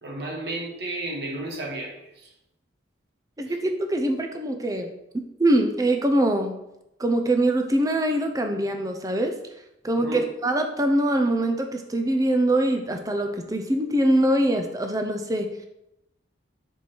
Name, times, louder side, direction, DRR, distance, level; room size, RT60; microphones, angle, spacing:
voice 1, 0.0-2.3 10.0-10.2, right 2 dB, 60° right, -1 dB, 1.4 m, -33 dB
voice 2, 3.4-4.9 5.4-6.6 7.0-9.3 9.8-15.7, right 1 dB, 20° right, 5 dB, 0.6 m, -23 dB
5.4 x 4.7 x 4.5 m, 0.85 s
head